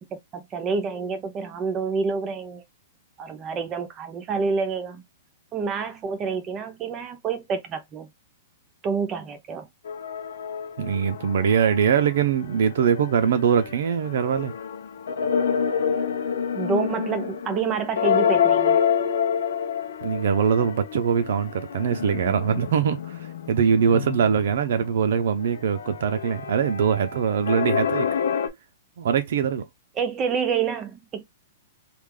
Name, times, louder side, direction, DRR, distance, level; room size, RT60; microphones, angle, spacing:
voice 1, 0.0-2.6 3.2-5.0 5.5-8.1 8.8-9.7 16.5-18.8 23.9-24.1 30.0-31.2, right 5 dB, 20° right, 0.7 m, -28 dB
sound 1, 9.9-12.1 12.4-28.5, left 7 dB, 85° left, 0.8 m, -28 dB
voice 2, 10.8-14.5 20.0-23.2 23.5-28.1 29.0-29.7, right 7 dB, 65° right, 0.6 m, -22 dB
3.3 x 2.5 x 3.7 m
hypercardioid pair, 170°, 0 cm